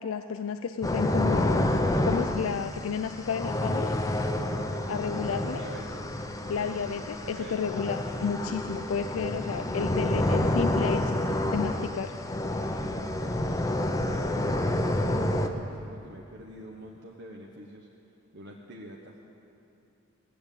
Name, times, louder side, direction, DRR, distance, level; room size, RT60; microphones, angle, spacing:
voice 1, 0.0-3.9 4.9-5.6 6.5-11.2 11.5-12.1, left 6 dB, 85° left, 9 dB, 0.4 m, -32 dB
sound 1, 0.8-15.5, left 1 dB, 15° left, 0.6 m, -29 dB
voice 2, 5.0-6.1 7.2-7.5 9.6-10.6 14.1-17.9 18.3-19.2, right 1 dB, 55° right, -1 dB, 1.0 m, -46 dB
17.0 x 6.8 x 8.9 m, 2.8 s
head